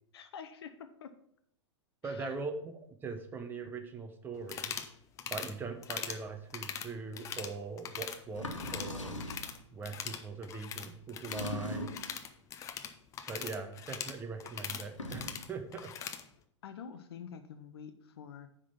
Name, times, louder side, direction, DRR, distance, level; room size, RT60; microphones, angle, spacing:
voice 1, 0.1-1.1 2.0-2.4 16.6-18.5, left 7 dB, 55° left, 9 dB, 0.7 m, -47 dB
voice 2, 2.0-2.7 3.0-4.8 5.3-9.2 9.7-11.9 13.3-15.9, right 4 dB, 15° right, 6 dB, 0.9 m, -41 dB
sound 1, 4.4-4.9 5.2-5.5 5.8-6.2 6.5-7.5 7.8-8.2 8.5-9.6 9.8-16.2, left 8 dB, 20° left, 0.6 m, -41 dB
sound 2, 8.3-9.5 11.3-12.1 14.8-15.5, left 2 dB, 75° left, 1.4 m, -40 dB
9.6 x 3.8 x 5.7 m, 0.70 s
figure-of-eight pair, 105°, 16 cm